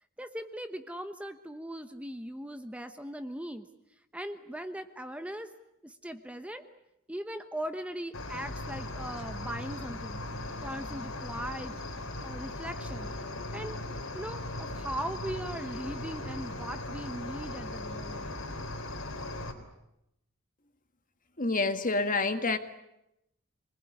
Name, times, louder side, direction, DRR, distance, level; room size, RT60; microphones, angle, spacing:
voice 1, 0.2-3.7 4.1-5.5 5.8-6.6 7.1-10.2 10.6-11.8 12.2-13.1 13.5-13.8 14.1-18.3, right 1 dB, 5° right, 1.0 m, -39 dB
Cricket, 8.1-19.5, left 1 dB, 75° left, 3.9 m, -38 dB
voice 2, 21.4-22.6, left 3 dB, 40° left, 1.9 m, -27 dB
27.5 x 21.0 x 9.7 m
head